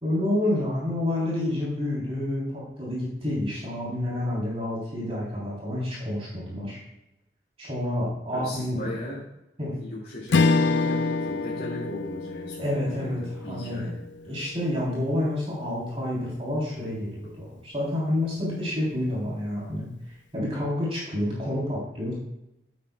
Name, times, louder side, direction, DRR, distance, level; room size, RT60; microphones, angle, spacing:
voice 1, 0.0-6.8 7.6-8.9 9.6-9.7 12.6-13.9 14.2-19.9 20.3-22.1, left 1 dB, 30° right, -6 dB, 3.4 m, -29 dB
voice 2, 8.3-9.2 9.8-14.0, left 1 dB, 50° left, -7 dB, 2.4 m, -37 dB
Strum, 10.3-14.9, left 3 dB, 80° left, 0.5 m, -27 dB
12.0 x 8.4 x 2.3 m, 0.86 s
head